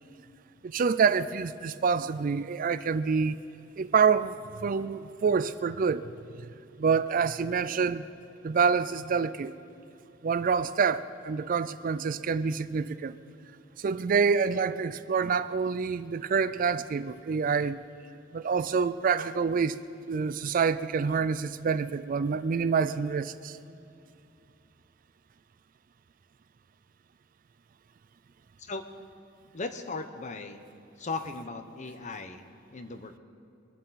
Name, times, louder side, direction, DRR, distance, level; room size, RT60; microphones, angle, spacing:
voice 1, 0.6-3.4 3.8-6.1 6.8-8.1 8.4-9.5 10.2-13.1 13.8-17.8 18.3-19.8 20.1-23.6, right 5 dB, 45° right, 14 dB, 0.4 m, -27 dB
voice 2, 29.5-30.6 31.0-33.2, left 3 dB, 40° left, 8 dB, 0.9 m, -37 dB
24.0 x 11.5 x 4.1 m, 2.6 s
head